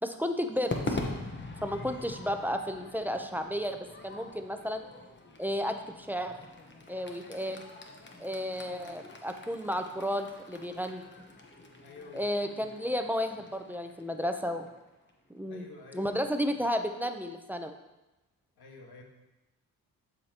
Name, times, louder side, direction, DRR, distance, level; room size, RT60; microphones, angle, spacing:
voice 1, 0.0-1.0 1.6-4.8 5.4-6.3 6.9-7.6 8.2-11.0 12.1-14.7 15.3-15.7 15.9-17.8, equal, 5° right, 6 dB, 0.6 m, -33 dB
Crowd / Fireworks, 0.7-15.1, left 2 dB, 30° left, 1.1 m, -43 dB
voice 2, 11.8-12.7 15.5-16.2 16.5-16.6 18.6-19.0, left 4 dB, 75° left, 1 dB, 1.5 m, -50 dB
12.0 x 5.0 x 2.9 m, 1.0 s
cardioid pair, 70°, 38 cm